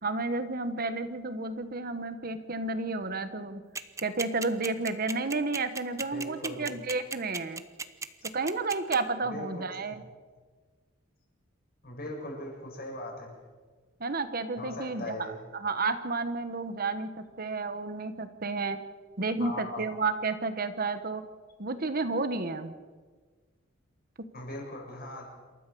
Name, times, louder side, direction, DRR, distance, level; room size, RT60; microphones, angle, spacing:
voice 1, 0.0-3.6 4.0-7.6 8.3-10.0 14.0-17.1 17.4-18.8 19.2-21.2 21.6-22.7, right 3 dB, 50° right, 10 dB, 1.3 m, -31 dB
sound 1, 3.8-9.0, right 4 dB, 15° right, 0.9 m, -34 dB
voice 2, 6.1-6.7 9.2-9.7 11.8-13.4 14.6-15.4 19.4-19.8 24.3-25.3, left 1 dB, 50° left, 0 dB, 7.3 m, -39 dB
27.5 x 13.5 x 7.0 m, 1.4 s
head